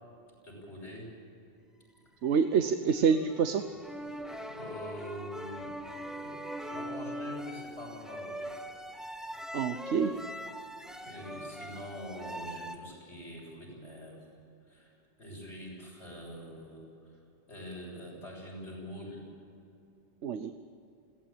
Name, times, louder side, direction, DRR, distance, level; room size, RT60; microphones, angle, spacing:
voice 1, 0.4-1.1 4.5-8.5 11.0-14.3 14.7-14.9 15.2-17.2 17.5-19.3, equal, 80° left, -2 dB, 7.6 m, -44 dB
sound 1, 2.2-12.8, equal, ahead, 0.9 m, -42 dB
voice 2, 2.2-3.6 9.5-10.1 20.2-20.5, right 6 dB, 85° right, 9 dB, 1.2 m, -27 dB
21.0 x 17.0 x 8.9 m, 2.7 s
omnidirectional pair, 1.2 m